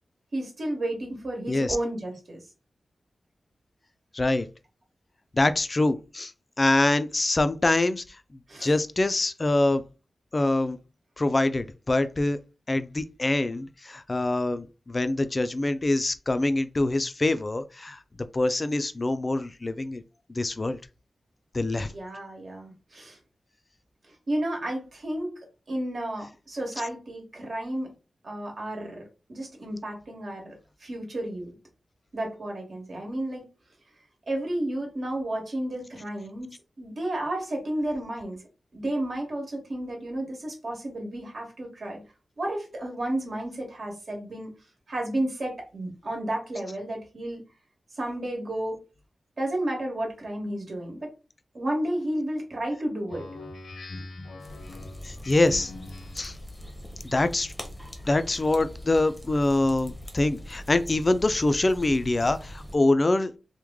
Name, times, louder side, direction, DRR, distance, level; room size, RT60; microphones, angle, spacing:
voice 1, 0.3-2.4 8.5-8.7 21.8-23.2 24.3-25.4 25.7-27.9 28.2-29.0 29.3-30.5 30.8-31.5 32.1-33.4 34.3-38.4 38.7-42.0 42.4-44.5 44.9-47.4 47.9-48.8 49.4-51.1 51.5-53.3, right 1 dB, 55° right, 1.3 m, -32 dB
voice 2, 4.1-4.5 5.3-6.3 6.6-8.0 8.6-9.8 10.3-10.8 11.2-12.4 12.7-18.0 18.3-20.0 20.3-20.8 21.5-21.9 26.8-26.9 55.0-55.7 56.2-56.4 57.1-57.5 58.0-63.4, left 2 dB, 30° left, 0.3 m, -24 dB
Speech synthesizer, 53.1-56.4, left 2 dB, 85° left, 0.6 m, -42 dB
sound 1, 54.4-62.7, equal, 10° left, 0.7 m, -42 dB
3.1 x 2.1 x 3.5 m
wide cardioid pair, 115°, 0 cm